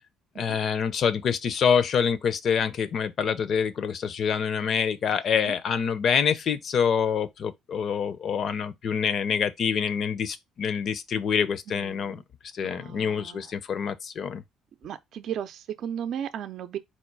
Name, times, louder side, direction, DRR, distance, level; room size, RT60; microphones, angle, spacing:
voice 1, 0.4-12.2 12.5-14.4, left 7 dB, 55° left, 0.6 m, -26 dB
voice 2, 11.7-12.2 12.6-13.5 14.8-16.8, right 9 dB, 65° right, 0.5 m, -36 dB
4.2 x 2.3 x 4.6 m
cardioid pair, 85°, 0 cm